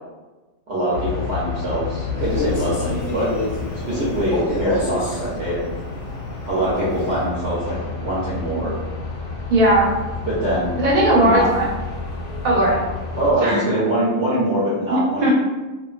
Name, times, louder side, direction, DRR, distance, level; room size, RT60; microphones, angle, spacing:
voice 1, 0.7-3.3 3.9-5.7 6.5-8.7 10.3-10.8 11.2-11.5 13.2-15.3, right 1 dB, 60° right, -8 dB, 0.9 m, -23 dB
sound 1, 0.9-13.3, left 4 dB, 90° left, 1.0 m, -30 dB
Male speech man speaking, 2.1-5.3 6.6-7.3, left 2 dB, 55° left, 0.7 m, -27 dB
voice 2, 9.5-9.9 10.8-11.7 12.4-12.8 13.4-13.6 14.9-15.3, right 1 dB, 80° right, -3 dB, 1.1 m, -17 dB
2.4 x 2.2 x 2.4 m, 1.2 s
omnidirectional pair, 1.4 m